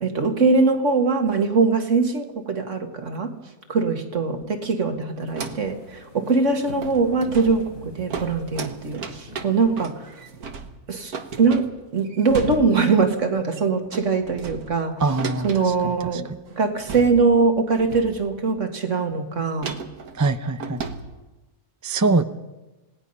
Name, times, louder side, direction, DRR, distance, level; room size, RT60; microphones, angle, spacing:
voice 1, 0.0-3.3 3.7-10.0 10.9-15.0 15.4-16.3 16.5-19.8 22.1-22.2, right 4 dB, 55° right, 5 dB, 2.1 m, -22 dB
sound 1, 5.2-5.8 6.2-6.3 6.6-13.0 13.4-13.7 13.9-16.1 16.5-16.6 16.8-17.5 17.7-18.5 19.6-21.1, right 4 dB, 90° right, 1.8 m, -35 dB
sound 2, 5.6-10.7, left 2 dB, 65° left, 4.2 m, -44 dB
voice 2, 15.0-16.2 20.1-20.8 21.8-22.2, right 3 dB, 25° right, 10 dB, 0.3 m, -23 dB
27.5 x 18.5 x 5.5 m, 1.1 s
omnidirectional pair, 1.5 m